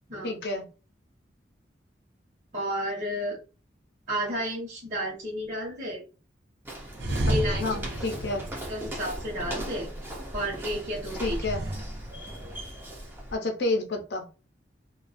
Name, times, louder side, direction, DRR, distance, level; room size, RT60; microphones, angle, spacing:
voice 1, 0.2-0.6 7.6-8.4 11.2-11.6 13.3-14.2, left 2 dB, 65° left, 5 dB, 0.6 m, -29 dB
voice 2, 2.5-3.4 4.1-6.0 7.3-7.8 8.7-9.9 10.3-11.4, equal, 45° right, -8 dB, 0.9 m, -32 dB
Walk footsteps, 6.7-13.4, right 1 dB, 10° right, 0.5 m, -39 dB
sound 1, 6.9-9.6 11.1-12.8, right 1 dB, 65° right, 0.6 m, -32 dB
2.3 x 2.3 x 2.5 m, 0.33 s
head